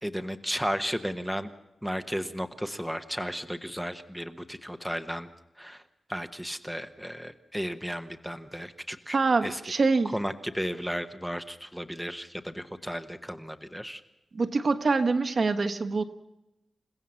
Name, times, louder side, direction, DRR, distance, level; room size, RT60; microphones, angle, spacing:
voice 1, 0.0-1.5 1.8-5.3 5.6-5.8 6.1-9.6 10.1-14.0, equal, ahead, 8 dB, 1.0 m, -34 dB
voice 2, 9.1-10.1 14.3-16.0, right 4 dB, 45° right, 8 dB, 1.4 m, -25 dB
29.5 x 16.0 x 7.2 m, 0.93 s
wide cardioid pair, 135°, 0 cm